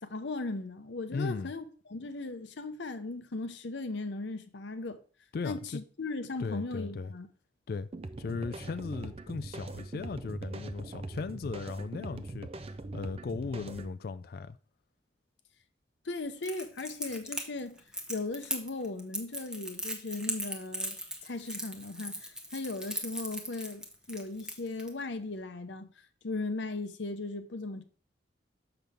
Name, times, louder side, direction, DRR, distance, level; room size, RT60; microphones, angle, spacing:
voice 1, 0.0-5.0 5.4-7.3 16.0-17.8 18.1-21.0 21.2-25.9 26.2-27.8, left 3 dB, 70° left, 0.8 m, -37 dB
voice 2, 1.1-1.5 5.3-5.8 6.4-7.1 7.7-7.9 8.2-14.6, left 4 dB, 55° left, 0.3 m, -37 dB
sound 1, 7.9-13.9, right 2 dB, 30° right, 0.4 m, -41 dB
Crackle, 16.4-24.9, equal, 5° right, 0.8 m, -38 dB
6.8 x 5.9 x 3.4 m
head